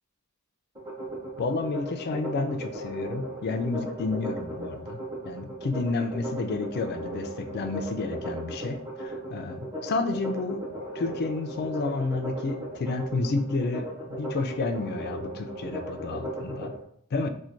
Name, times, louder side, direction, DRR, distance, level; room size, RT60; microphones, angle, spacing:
sound 1, 0.7-16.7, right 1 dB, 20° right, 0.8 m, -36 dB
voice 1, 1.4-5.0 5.2-10.7 10.9-16.7 17.1-17.3, left 3 dB, 45° left, 6 dB, 0.3 m, -30 dB
4.4 x 2.2 x 2.5 m, 0.65 s
head